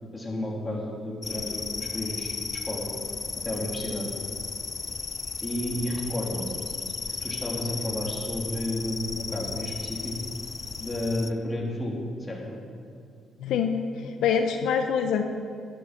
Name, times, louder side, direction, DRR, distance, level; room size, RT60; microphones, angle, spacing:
voice 1, 0.1-2.3 2.6-2.9 3.4-4.1 5.4-6.5 7.1-10.1 10.8-12.6, left 1 dB, 15° left, -3 dB, 3.0 m, -32 dB
sound 1, 1.2-11.3, left 5 dB, 40° left, 0.5 m, -35 dB
voice 2, 13.4-15.2, left 7 dB, 85° left, 6 dB, 0.7 m, -25 dB
11.5 x 10.0 x 5.9 m, 2.3 s
cardioid pair, 90°, 0 cm